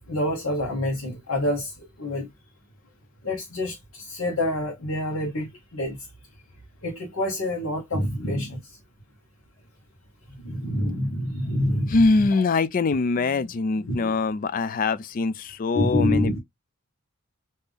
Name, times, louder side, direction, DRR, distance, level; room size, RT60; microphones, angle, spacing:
voice 1, 0.1-1.7 2.0-2.3 3.2-6.0 6.8-8.6 10.4-12.3 13.9-14.1 15.7-16.4, left 1 dB, 70° left, 1.1 m, -27 dB
voice 2, 11.9-16.4, left 3 dB, 40° left, 0.3 m, -23 dB
3.4 x 2.7 x 3.5 m
head